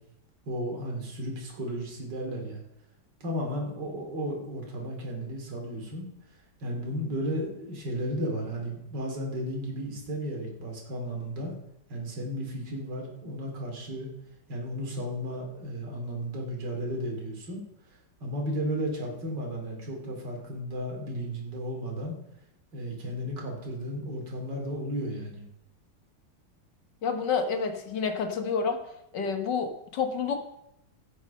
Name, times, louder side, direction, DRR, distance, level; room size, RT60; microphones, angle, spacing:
voice 1, 0.5-2.6 3.2-6.1 6.6-11.5 11.9-14.1 14.5-17.6 18.2-22.2 22.7-25.4, equal, 55° right, 0 dB, 3.2 m, -34 dB
voice 2, 27.0-28.8 29.1-30.4, left 5 dB, 60° left, 5 dB, 1.9 m, -29 dB
16.0 x 6.4 x 5.6 m, 0.82 s
omnidirectional pair, 2.3 m